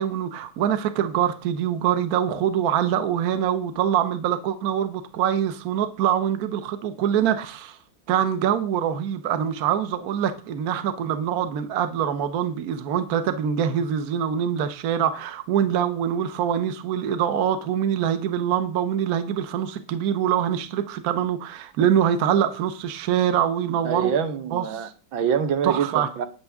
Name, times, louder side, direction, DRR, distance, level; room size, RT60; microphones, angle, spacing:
voice 1, 0.0-7.8 8.1-24.1 24.5-24.9 25.6-26.1, right 9 dB, 55° right, 10 dB, 1.3 m, -24 dB
voice 2, 23.8-26.3, right 7 dB, 80° right, 9 dB, 1.9 m, -25 dB
19.0 x 6.9 x 3.5 m, 0.35 s
omnidirectional pair, 2.2 m